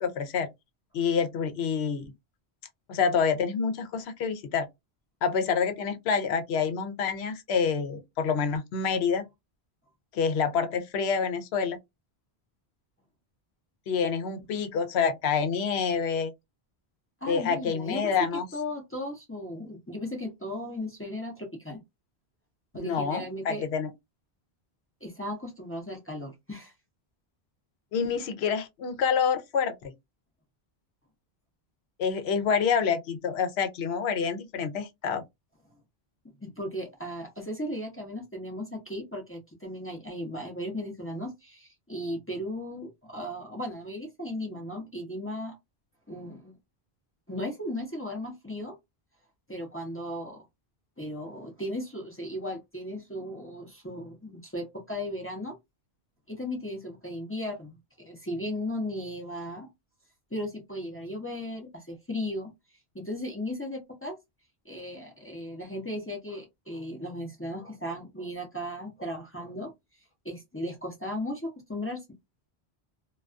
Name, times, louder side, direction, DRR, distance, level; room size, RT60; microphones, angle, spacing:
voice 1, 0.0-0.5 0.9-2.1 2.9-4.7 5.2-9.2 10.1-11.8 13.9-16.3 17.3-18.5 22.8-23.9 27.9-29.7 32.0-35.2, left 6 dB, 85° left, 0.8 m, -27 dB
voice 2, 17.2-21.8 22.7-23.6 25.0-26.7 36.4-45.6 46.1-46.5 47.3-48.8 49.5-50.4 51.0-55.6 56.3-59.7 60.3-62.5 62.9-64.2 64.7-69.7 70.2-72.0, left 1 dB, 15° left, 0.5 m, -36 dB
2.3 x 2.2 x 2.4 m
omnidirectional pair, 1.0 m